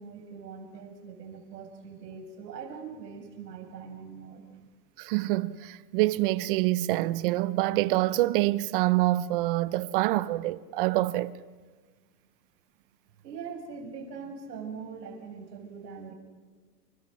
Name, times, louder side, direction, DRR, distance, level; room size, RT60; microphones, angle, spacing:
voice 1, 0.0-4.5 13.2-16.1, right 5 dB, 75° right, 6.2 m, -42 dB
voice 2, 5.0-11.3, right 17 dB, 35° right, 0.7 m, -26 dB
28.5 x 27.5 x 6.3 m
supercardioid pair, 160°, 49 cm